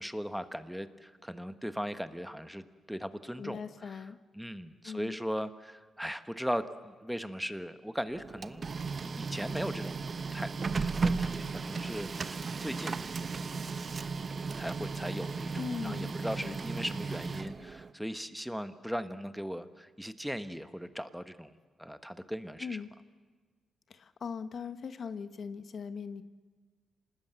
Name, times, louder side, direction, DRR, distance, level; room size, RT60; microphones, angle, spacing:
voice 1, 0.0-4.1 4.3-8.6 9.0-10.0 10.3-13.0 14.5-21.5 21.8-22.8, equal, ahead, 10 dB, 1.2 m, -38 dB
voice 2, 3.4-4.2 4.8-5.2 15.5-16.9 22.6-22.9 23.9-26.2, left 6 dB, 60° left, 11 dB, 1.1 m, -40 dB
Printer, 8.1-17.9, right 4 dB, 45° right, 0.9 m, -35 dB
26.5 x 19.5 x 8.2 m, 1.4 s
cardioid pair, 75°, 0 cm